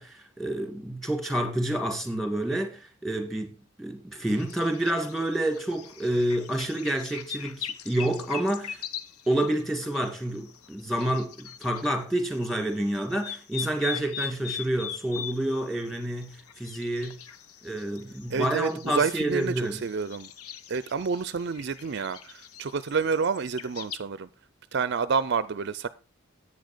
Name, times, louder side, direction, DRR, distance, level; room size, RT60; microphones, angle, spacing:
voice 1, 0.0-8.8 9.3-17.2 17.6-19.8, right 1 dB, ahead, 2.1 m, -29 dB
sound 1, 4.3-11.9 12.2-24.0, left 9 dB, 90° left, 0.9 m, -41 dB
voice 2, 18.3-20.3 20.7-24.3 24.7-25.9, right 5 dB, 50° right, 0.4 m, -29 dB
10.5 x 8.7 x 5.0 m
head